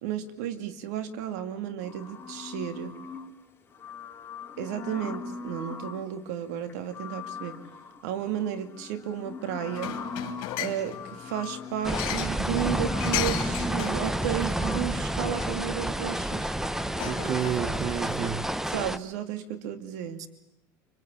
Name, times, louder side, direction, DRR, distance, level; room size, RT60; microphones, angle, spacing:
voice 1, 0.0-3.0 4.6-7.6 8.0-10.0 10.6-16.5 18.7-20.2, right 9 dB, 75° right, 9 dB, 2.5 m, -33 dB
sound 1, 1.8-3.3 3.7-6.1 6.6-14.8, left 5 dB, 25° left, 4.7 m, -40 dB
sound 2, 9.7-18.2, left 15 dB, 65° left, 2.9 m, -37 dB
sound 3, 11.8-19.0, right 1 dB, 5° right, 1.1 m, -30 dB
voice 2, 17.0-18.5 20.2-20.3, right 9 dB, 40° right, 13 dB, 1.3 m, -30 dB
25.0 x 25.0 x 8.6 m, 0.80 s
supercardioid pair, 100°, 9 cm